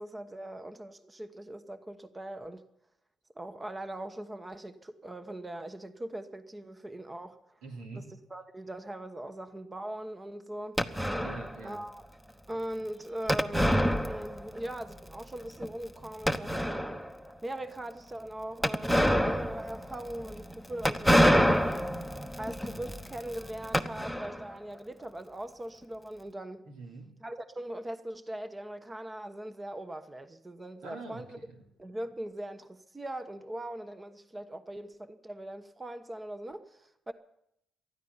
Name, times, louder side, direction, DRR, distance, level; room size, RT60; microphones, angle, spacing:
voice 1, 0.0-2.6 3.3-7.6 7.9-8.0 8.3-10.8 11.6-12.0 12.5-17.0 17.4-21.8 22.4-26.6 27.2-31.4 31.8-37.1, right 1 dB, 20° right, 1.1 m, -40 dB
voice 2, 7.6-8.1 11.2-11.8 26.7-27.1 30.8-31.6, right 3 dB, 85° right, 3.2 m, -44 dB
sound 1, 10.8-11.6 13.3-14.6 14.9-15.0 15.6-15.7 16.2-17.1 18.6-24.5, equal, 5° right, 1.1 m, -27 dB
19.0 x 13.0 x 5.6 m
supercardioid pair, 65°, 0 cm